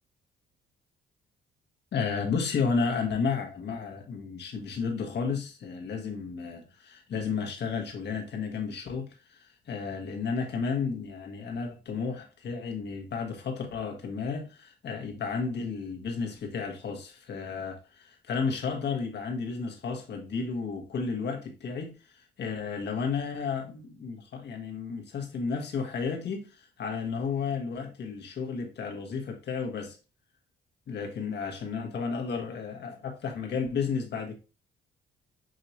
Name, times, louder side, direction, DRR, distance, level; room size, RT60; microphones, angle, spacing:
voice 1, 1.9-30.0 30.9-34.4, left 5 dB, 60° left, 1.4 m, -32 dB
6.3 x 2.9 x 2.7 m
cardioid pair, 90°, 20 cm